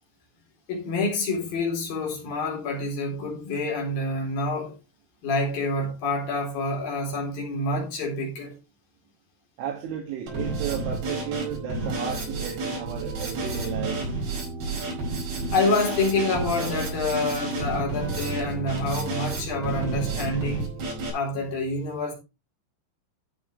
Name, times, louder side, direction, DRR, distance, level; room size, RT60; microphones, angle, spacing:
voice 1, 0.7-4.7 5.2-8.6 15.5-20.7 21.1-22.1, left 2 dB, 50° left, 5.2 m, -27 dB
voice 2, 9.6-14.1, right 9 dB, 80° right, 4.5 m, -33 dB
Drum kit, 10.3-21.1, right 3 dB, 65° right, 7.3 m, -30 dB
13.5 x 8.8 x 3.2 m
omnidirectional pair, 5.5 m